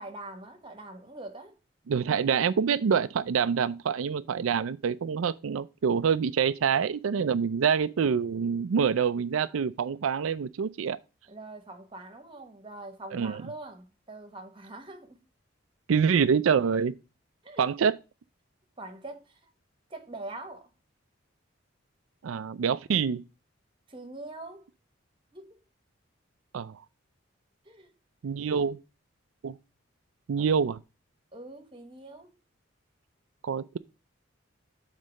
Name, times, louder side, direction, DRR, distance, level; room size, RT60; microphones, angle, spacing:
voice 1, 0.0-1.6 11.3-15.2 17.4-17.7 18.8-19.4 19.9-20.7 23.9-24.7 25.3-25.6 27.6-27.9 28.5-28.7 30.4-30.5 31.3-32.3, right 2 dB, 25° right, 1.2 m, -43 dB
voice 2, 1.9-11.0 13.1-13.4 15.9-17.0 17.6-18.0 22.2-23.2 26.5-26.8 28.2-28.8 29.4-29.6 30.3-30.8 33.4-33.8, right 6 dB, 85° right, 0.4 m, -26 dB
7.5 x 4.0 x 6.3 m
head